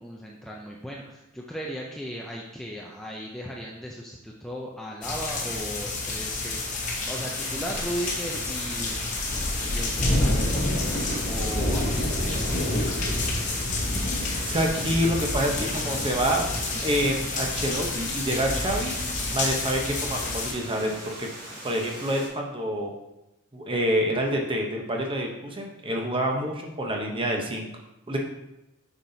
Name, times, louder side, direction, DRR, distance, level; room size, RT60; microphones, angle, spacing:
voice 1, 0.0-6.6 7.0-9.0 9.6-13.7, equal, ahead, -2 dB, 0.4 m, -37 dB
sound 1, 5.0-20.5, left 2 dB, 35° left, 1.0 m, -28 dB
Water, 5.8-22.3, right 1 dB, 45° right, 2.0 m, -41 dB
voice 2, 14.5-16.4 16.8-19.0 19.3-21.3 21.6-22.9 23.5-27.7 28.1-28.2, equal, 25° right, 1 dB, 0.8 m, -27 dB
7.2 x 5.5 x 2.7 m, 0.93 s
head